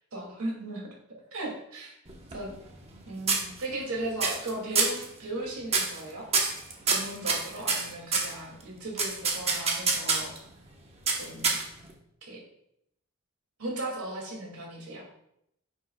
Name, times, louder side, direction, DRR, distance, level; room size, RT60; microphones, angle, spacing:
voice 1, 0.1-0.8 1.3-1.9 2.3-2.5 3.1-6.3 6.9-10.3 11.2-11.6 12.2-12.4 13.6-15.0, right 1 dB, 85° right, -1 dB, 2.6 m, -36 dB
sound 1, 2.1-3.0 3.3-3.9 4.2-4.5 4.7-5.0 5.7-6.0 6.3-8.3 9.0-10.4 11.1-11.9, right 4 dB, 30° right, 1.2 m, -26 dB
9.5 x 6.9 x 2.4 m, 0.77 s
head